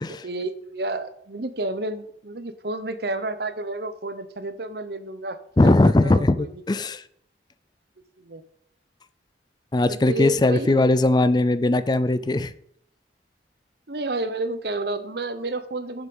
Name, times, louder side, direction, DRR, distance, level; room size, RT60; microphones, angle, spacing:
voice 1, 0.2-6.5 8.2-8.4 9.8-10.8 13.9-16.1, right 2 dB, 60° right, 1.0 m, -30 dB
voice 2, 5.6-7.0 9.7-12.5, left 2 dB, 25° left, 0.4 m, -19 dB
9.8 x 7.3 x 5.5 m
head